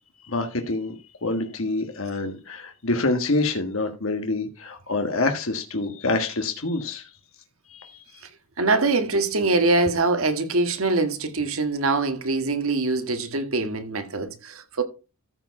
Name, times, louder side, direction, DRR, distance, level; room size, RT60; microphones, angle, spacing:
voice 1, 0.3-0.9 1.2-7.1 7.7-8.0, left 2 dB, 70° left, 1.4 m, -26 dB
voice 2, 8.6-14.8, right 3 dB, 80° right, 1.6 m, -23 dB
14.0 x 4.8 x 4.7 m
head